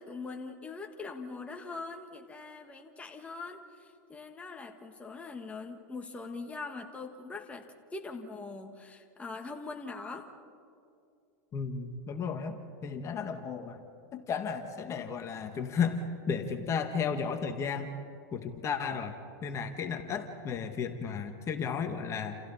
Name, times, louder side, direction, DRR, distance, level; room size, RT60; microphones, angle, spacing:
voice 1, 0.0-7.7 7.9-10.3, left 3 dB, 10° left, 4 dB, 1.8 m, -42 dB
voice 2, 11.5-13.8 14.1-17.9 18.3-19.1 19.4-22.4, left 6 dB, 30° left, 6 dB, 1.7 m, -34 dB
29.5 x 29.0 x 4.3 m, 2.5 s
hypercardioid pair, 120°, 10 cm